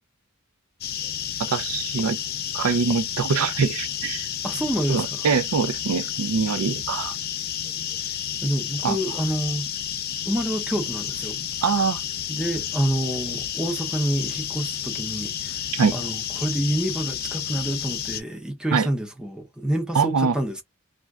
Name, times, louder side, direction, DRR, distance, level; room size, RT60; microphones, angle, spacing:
sound 1, 0.8-18.2, left 9 dB, 45° left, 0.5 m, -31 dB
voice 1, 1.5-2.2 2.5-4.3 4.9-7.1 8.8-9.0 11.6-12.0 15.7-15.9 18.7-18.9 19.9-20.4, right 5 dB, 85° right, 0.4 m, -23 dB
voice 2, 4.4-5.2 8.4-9.7 10.3-11.4 12.3-15.6 15.9-20.6, right 1 dB, 5° right, 0.6 m, -27 dB
2.5 x 2.2 x 3.4 m
head